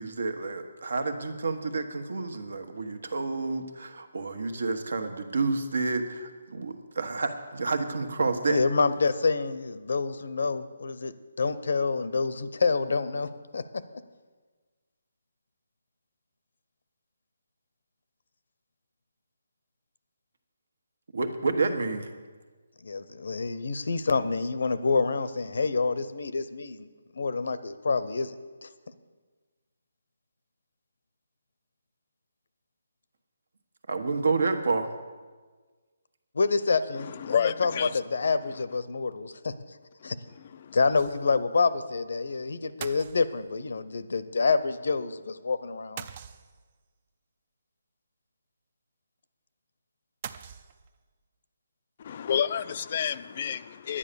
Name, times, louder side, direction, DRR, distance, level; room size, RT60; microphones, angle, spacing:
voice 1, 0.0-8.6 21.1-22.1 33.9-34.9, right 3 dB, 75° right, 8 dB, 1.4 m, -29 dB
voice 2, 8.5-11.1 11.4-13.6 22.8-26.9 27.1-28.4 28.6-28.7 36.3-39.5 40.0-40.2 40.7-46.0, left 4 dB, 65° left, 14 dB, 0.7 m, -27 dB
voice 3, 36.9-38.6 40.0-40.8 52.0-54.0, left 8 dB, 35° left, 14 dB, 0.3 m, -31 dB
sound 1, 40.9-41.5 41.7-41.8 42.8-43.7 46.0-46.8 50.2-51.1, right 8 dB, 30° right, 0.4 m, -43 dB
10.0 x 9.9 x 6.9 m, 1.4 s
hypercardioid pair, 170°, 0 cm